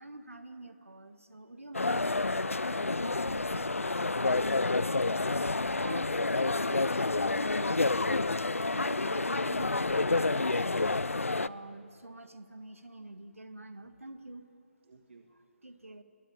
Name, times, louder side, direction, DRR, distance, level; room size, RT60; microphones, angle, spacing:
voice 1, 0.0-4.9 8.3-14.5 15.3-16.0, right 2 dB, 85° right, 9 dB, 1.8 m, -48 dB
sound 1, 1.7-11.5, left 3 dB, 85° left, 0.7 m, -29 dB
sound 2, 3.0-10.0, left 1 dB, 15° left, 8.0 m, -59 dB
voice 2, 5.7-7.9 14.9-15.3, right 4 dB, 60° right, 6 dB, 1.8 m, -47 dB
23.5 x 22.0 x 8.7 m, 2.7 s
figure-of-eight pair, 145°, 7 cm